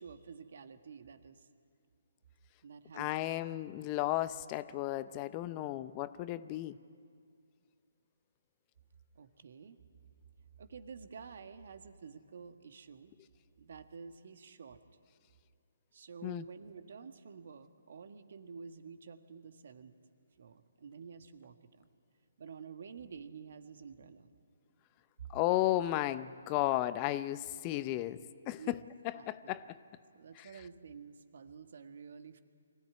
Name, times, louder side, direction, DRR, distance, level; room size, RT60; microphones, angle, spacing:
voice 1, 0.0-1.5 2.6-3.3 9.1-9.8 10.6-13.1 13.6-14.8 15.9-19.9 20.4-21.9 22.4-24.3 28.6-28.8 29.1-29.5 30.1-32.4, right 6 dB, 60° right, 9 dB, 1.5 m, -50 dB
voice 2, 2.9-6.8 16.2-16.4 25.3-28.2 28.5-28.8 29.0-29.8 30.4-30.5, left 15 dB, 30° left, 15 dB, 0.6 m, -34 dB
23.5 x 16.5 x 9.6 m, 2.2 s
figure-of-eight pair, 140°, 0 cm